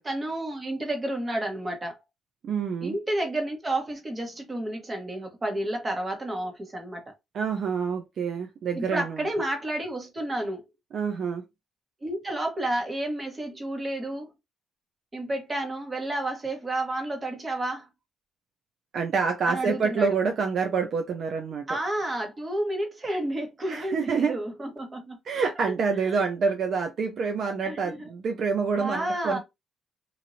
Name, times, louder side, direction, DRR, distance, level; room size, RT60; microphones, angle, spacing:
voice 1, 0.0-2.0 2.8-7.1 8.7-10.6 12.0-14.3 15.1-17.9 19.5-20.2 21.7-25.2 25.9-26.2 27.6-28.1 28.8-29.4, right 1 dB, 25° right, 1.2 m, -31 dB
voice 2, 2.4-2.9 7.3-9.3 10.9-11.4 18.9-21.8 23.7-24.4 25.3-29.4, right 5 dB, 60° right, 0.5 m, -27 dB
3.0 x 2.6 x 2.6 m
cardioid pair, 90°, 0 cm